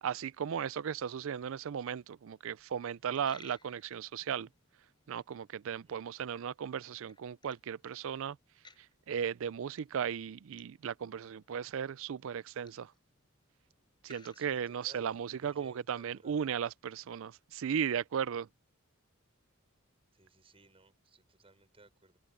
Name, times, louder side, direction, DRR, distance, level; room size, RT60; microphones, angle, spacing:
voice 1, 0.0-4.5 5.1-8.4 9.1-12.9 14.0-18.5, right 8 dB, 65° right, 0.4 m, -36 dB
Coin (dropping), 3.0-15.2, left 4 dB, 20° left, 6.6 m, -64 dB
voice 2, 5.7-6.0 14.3-16.6 20.1-22.2, right 2 dB, 25° right, 5.4 m, -60 dB
open air
head